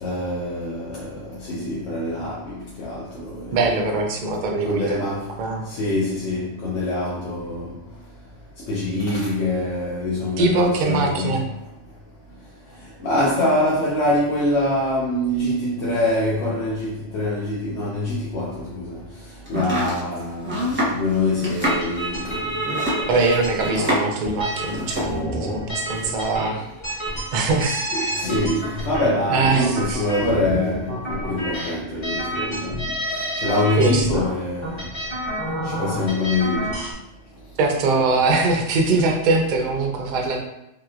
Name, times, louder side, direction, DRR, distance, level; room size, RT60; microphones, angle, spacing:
voice 1, 0.0-3.5 4.6-5.3 5.7-7.7 8.7-11.4 13.0-19.0 19.5-20.6 20.9-22.4 22.8-23.1 27.9-32.8 33.4-34.8 35.6-36.8, left 1 dB, 70° left, 0.9 m, -24 dB
voice 2, 3.5-5.6 10.4-11.4 23.1-26.6 27.3-27.9 29.3-30.0 33.8-34.1 37.6-40.4, right 3 dB, 60° right, 0.5 m, -22 dB
Domestic sounds home sounds, 19.5-24.3 24.5-25.2, equal, 10° right, 0.8 m, -26 dB
sound 1, 21.6-36.9, right 1 dB, 25° left, 0.9 m, -29 dB
3.2 x 2.9 x 2.3 m
omnidirectional pair, 1.3 m